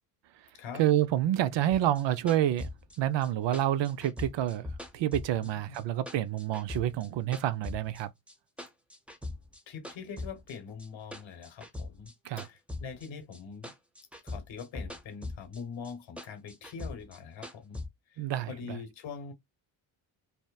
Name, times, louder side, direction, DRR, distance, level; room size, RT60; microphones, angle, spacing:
voice 1, 0.8-2.7 3.0-4.7 4.9-8.1 12.2-12.5 18.2-18.8, right 12 dB, 65° right, 0.5 m, -28 dB
sound 1, 1.7-5.8 6.1-8.0 8.3-9.6 9.8-13.4 13.6-15.6 15.8-17.9, left 2 dB, 5° right, 0.6 m, -41 dB
voice 2, 9.7-12.1 12.4-13.7 14.2-17.8 18.1-19.3, left 6 dB, 65° left, 1.0 m, -43 dB
2.7 x 2.1 x 2.2 m
supercardioid pair, 65°, 49 cm